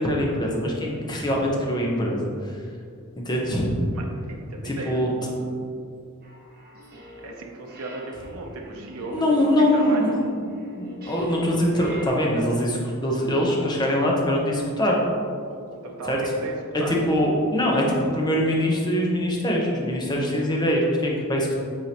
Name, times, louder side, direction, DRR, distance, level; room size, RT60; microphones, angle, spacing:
voice 1, 0.0-2.2 3.2-3.7 4.6-5.1 9.1-10.1 10.7-15.0 16.1-16.2 16.9-21.6, equal, 20° left, -2 dB, 0.9 m, -23 dB
voice 2, 3.9-5.0 7.2-10.2 15.5-17.0, right 2 dB, 75° right, 1 dB, 0.7 m, -36 dB
sound 1, 6.2-7.4 7.7-12.1, right 1 dB, 45° right, 1.0 m, -42 dB
8.4 x 3.8 x 2.9 m, 2.3 s
head